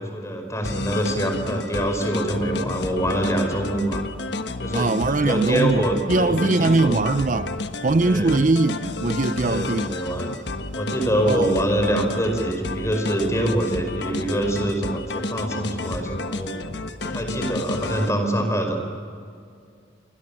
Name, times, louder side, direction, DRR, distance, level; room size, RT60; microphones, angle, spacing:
voice 1, 0.1-4.0 4.6-7.0 8.1-8.4 9.4-10.3 10.8-16.5 17.0-18.8, right 1 dB, 15° left, 5.3 m, -25 dB
sound 1, 0.6-18.1, left 2 dB, 60° left, 1.3 m, -31 dB
voice 2, 4.7-7.6 7.8-10.0 11.2-11.5, right 3 dB, 40° right, 0.6 m, -21 dB
28.0 x 25.0 x 7.4 m
head